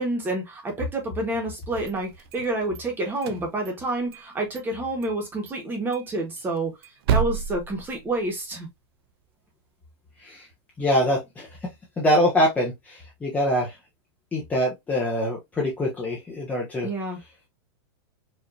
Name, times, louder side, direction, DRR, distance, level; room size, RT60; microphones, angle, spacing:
voice 1, 0.0-6.7 7.1-8.7 16.8-17.2, right 2 dB, 15° right, 1.4 m, -28 dB
sound 1, 1.6-2.8 3.2-4.3 4.6-4.7 5.0-5.2 5.5-5.6 5.9-8.5, right 8 dB, 60° right, 0.7 m, -30 dB
voice 2, 10.8-13.8 14.3-16.9, equal, 10° left, 0.9 m, -24 dB
4.8 x 2.8 x 2.7 m
supercardioid pair, 160°, 14 cm